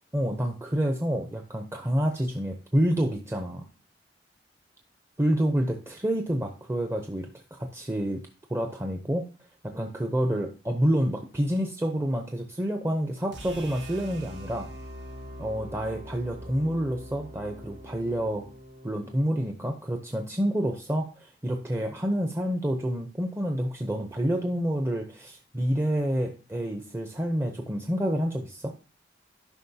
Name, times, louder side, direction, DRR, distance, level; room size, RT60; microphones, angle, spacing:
voice 1, 0.1-3.7 5.2-8.2 8.5-9.3 9.6-14.7 15.4-18.5 18.8-28.7, equal, 15° right, 4 dB, 0.6 m, -28 dB
sound 1, 13.3-19.5, equal, 75° right, 1.3 m, -43 dB
11.5 x 5.3 x 2.7 m, 0.33 s
head